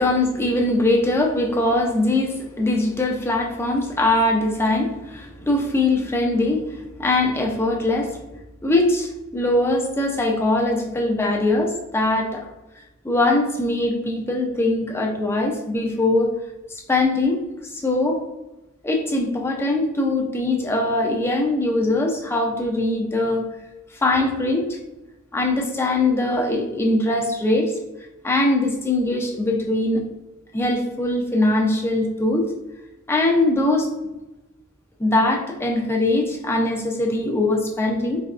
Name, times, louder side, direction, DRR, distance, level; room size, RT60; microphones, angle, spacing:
voice 1, 0.0-8.2 8.6-12.4 13.0-16.3 16.7-17.4 17.7-18.2 18.8-23.4 23.9-24.8 25.3-27.7 28.2-30.0 30.5-32.4 33.1-33.9 35.0-38.2, left 2 dB, 10° left, 0 dB, 0.4 m, -21 dB
4.1 x 2.2 x 2.4 m, 1.0 s
head